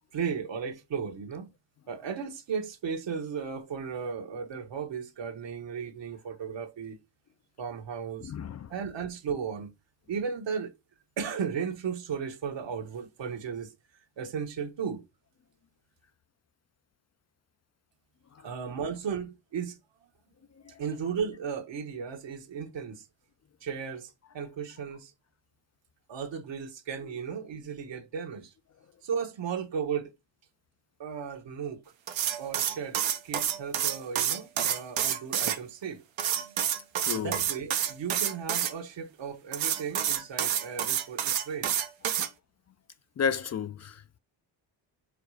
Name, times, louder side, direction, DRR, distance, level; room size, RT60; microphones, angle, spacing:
voice 1, 0.1-1.5 1.9-7.0 7.6-8.3 8.7-9.7 10.1-10.7 11.2-13.7 14.2-15.0 18.4-19.8 20.8-23.1 23.6-25.1 26.1-28.5 29.0-30.1 31.0-31.8 32.4-36.0 37.1-41.8, right 6 dB, 70° right, 1.4 m, -35 dB
voice 2, 8.2-8.7 37.0-37.3 43.2-44.2, left 7 dB, 40° left, 0.4 m, -32 dB
sound 1, 32.1-35.6 36.2-38.7 39.5-42.3, right 10 dB, 85° right, 1.1 m, -28 dB
5.0 x 3.9 x 4.8 m
cardioid pair, 95°, 45 cm